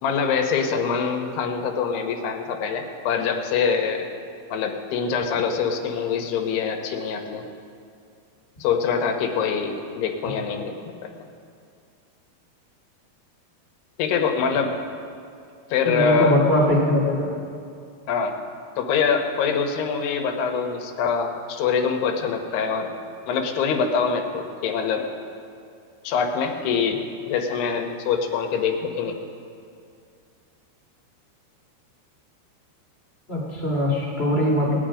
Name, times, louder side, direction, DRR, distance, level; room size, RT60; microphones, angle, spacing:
voice 1, 0.0-4.1 4.5-7.4 8.6-11.1 14.0-14.8 15.7-16.4 18.1-18.3 18.8-22.9 23.3-25.1 26.0-27.0 27.3-29.2, left 6 dB, 90° left, 3 dB, 3.1 m, -24 dB
voice 2, 15.8-17.3 33.3-34.8, left 1 dB, 20° left, -4 dB, 1.7 m, -21 dB
19.0 x 10.0 x 5.0 m, 2.4 s
omnidirectional pair, 4.5 m